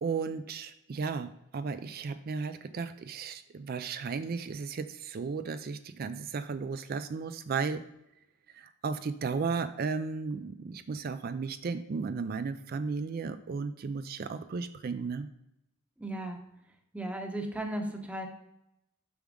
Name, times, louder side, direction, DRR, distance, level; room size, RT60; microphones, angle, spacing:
voice 1, 0.0-7.8 8.5-15.3, right 5 dB, 45° right, 11 dB, 0.3 m, -34 dB
voice 2, 16.0-16.4 16.9-18.3, right 1 dB, 5° right, 4 dB, 0.8 m, -35 dB
7.0 x 6.1 x 3.7 m, 0.85 s
head